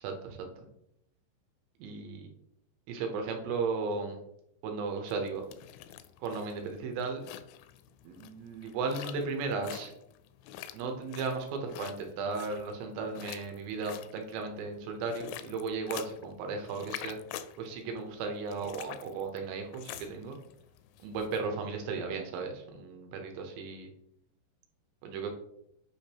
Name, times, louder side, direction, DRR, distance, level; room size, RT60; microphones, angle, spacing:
voice 1, 0.0-0.5 1.8-2.3 2.9-4.2 4.6-5.4 6.2-7.2 8.0-9.9 10.7-17.2 17.6-20.4 21.0-23.9 25.0-25.3, right 4 dB, 75° right, 4 dB, 2.9 m, -35 dB
sound 1, 5.1-21.4, left 12 dB, 85° left, 2.7 m, -47 dB
8.8 x 5.0 x 2.9 m, 0.77 s
omnidirectional pair, 5.4 m